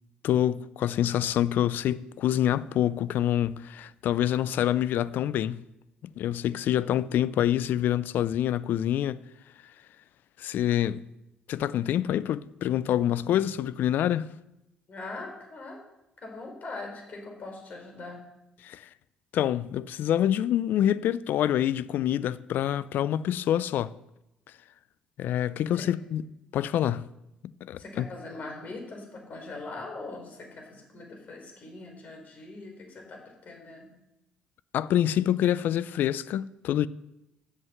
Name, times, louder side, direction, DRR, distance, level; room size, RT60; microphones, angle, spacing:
voice 1, 0.2-5.6 6.0-9.2 10.4-11.0 11.5-14.3 18.6-18.9 19.3-23.9 25.2-26.2 26.5-27.1 27.6-28.1 34.7-36.9, left 11 dB, 65° left, 0.4 m, -26 dB
voice 2, 14.9-15.8 16.2-18.3 25.7-25.9 27.8-33.9, left 3 dB, 50° left, 3.7 m, -41 dB
8.0 x 7.5 x 7.7 m
supercardioid pair, 65°, 3 cm